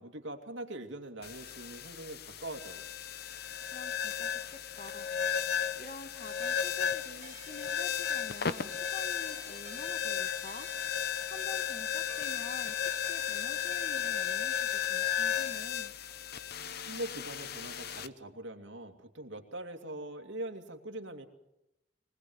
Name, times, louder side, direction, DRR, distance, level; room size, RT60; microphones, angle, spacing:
voice 1, 0.0-2.9 16.9-21.3, right 1 dB, 90° right, 4 dB, 2.7 m, -42 dB
sound 1, 1.2-18.1, left 8 dB, 60° left, 1.0 m, -34 dB
voice 2, 3.7-5.1 5.7-10.7 11.3-15.9, left 2 dB, 45° left, 8 dB, 1.6 m, -48 dB
sound 2, 6.2-15.6, right 4 dB, 45° right, 2.1 m, -52 dB
24.5 x 19.0 x 8.1 m, 0.87 s
head